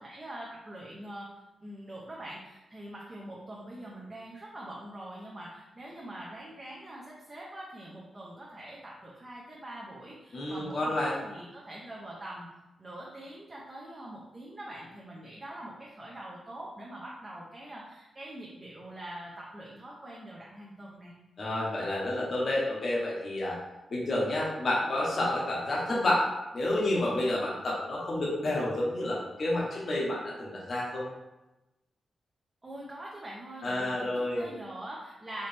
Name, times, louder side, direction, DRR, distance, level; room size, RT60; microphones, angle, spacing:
voice 1, 0.0-12.5 12.8-21.1 32.6-35.5, right 1 dB, 20° right, -4 dB, 0.6 m, -44 dB
voice 2, 10.3-11.2 21.4-23.6 23.9-26.3 26.5-31.1 33.6-34.5, left 1 dB, 45° left, -4 dB, 0.9 m, -29 dB
4.3 x 3.1 x 3.3 m, 1.0 s
wide cardioid pair, 150°, 0 cm